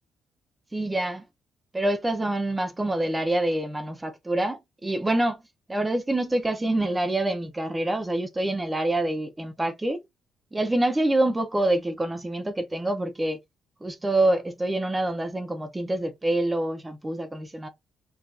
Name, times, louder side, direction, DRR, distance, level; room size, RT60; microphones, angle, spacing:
voice 1, 0.7-1.2 1.7-5.4 5.7-10.0 10.5-13.4 13.8-17.7, right 1 dB, 15° right, 0.8 m, -26 dB
4.7 x 2.9 x 2.5 m
cardioid pair, 90°, 0 cm